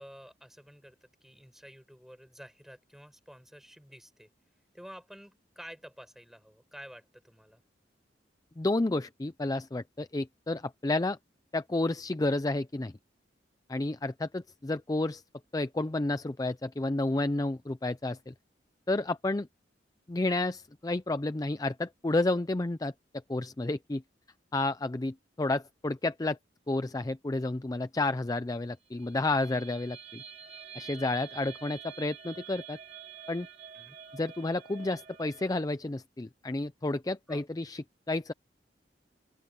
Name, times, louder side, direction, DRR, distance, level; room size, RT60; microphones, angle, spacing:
voice 1, 0.0-4.3 4.7-7.6 33.7-34.0 37.3-37.4, equal, ahead, 7.4 m, -50 dB
voice 2, 8.6-11.2 11.5-12.9 13.7-15.2 15.5-18.3 18.9-19.5 20.1-22.9 23.3-24.0 24.5-26.4 26.7-30.2 30.7-32.8 33.3-33.5 34.1-38.3, left 2 dB, 20° left, 0.5 m, -31 dB
sound 1, 29.0-35.6, right 7 dB, 40° right, 3.7 m, -48 dB
open air
head